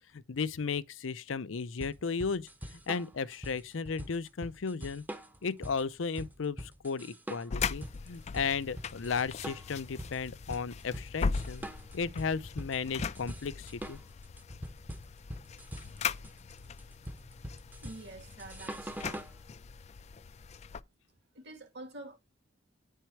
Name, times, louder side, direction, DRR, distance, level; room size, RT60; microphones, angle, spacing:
voice 1, 0.1-5.0 5.4-11.7 11.9-14.0, left 5 dB, 85° left, 0.6 m, -35 dB
sound 1, 1.8-19.4, equal, 10° right, 0.7 m, -44 dB
sound 2, 7.5-20.8, left 5 dB, 35° left, 0.3 m, -39 dB
voice 2, 17.8-19.3 21.3-22.2, right 2 dB, 60° right, 2.4 m, -47 dB
9.2 x 4.5 x 4.6 m
head